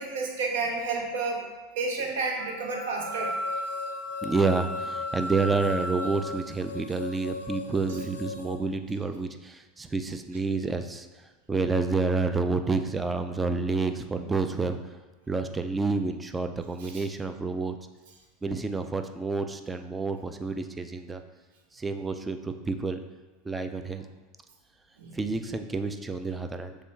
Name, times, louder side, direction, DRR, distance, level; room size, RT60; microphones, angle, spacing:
voice 1, 0.0-1.4 1.8-3.3 16.8-17.0 25.0-25.1, right 3 dB, 70° right, 2 dB, 0.8 m, -30 dB
Wind instrument woodwind instrument, 2.4-6.4, equal, 35° left, 0.6 m, -35 dB
sound 1, 3.0-8.6, left 4 dB, 90° left, 0.5 m, -39 dB
voice 2, 4.2-11.1 11.5-14.8 15.3-17.8 18.4-21.2 21.7-23.0 23.5-24.1 25.1-26.8, right 4 dB, 15° right, 8 dB, 0.3 m, -29 dB
6.5 x 2.3 x 3.2 m, 1.3 s
hypercardioid pair, 85°, 0 cm